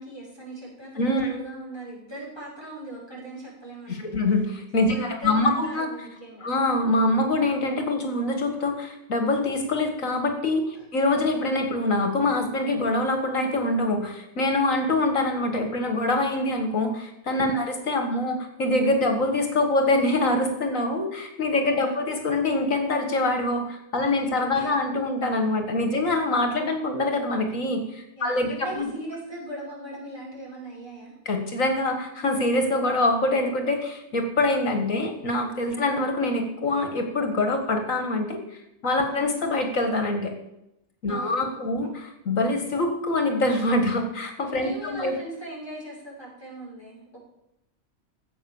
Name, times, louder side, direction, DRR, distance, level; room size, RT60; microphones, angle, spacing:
voice 1, 0.0-4.3 4.9-6.5 10.7-10.9 17.4-17.7 21.8-22.1 24.0-24.1 24.5-24.8 28.2-31.1 35.7-35.9 39.0-39.3 41.1-42.0 44.6-47.2, right 2 dB, 15° right, -5 dB, 5.8 m, -40 dB
voice 2, 1.0-1.3 3.9-5.9 6.4-28.5 28.7-28.9 31.3-38.4 38.8-40.3 41.0-45.2, left 2 dB, 70° left, 5 dB, 2.0 m, -24 dB
15.0 x 8.1 x 7.1 m, 0.86 s
omnidirectional pair, 1.4 m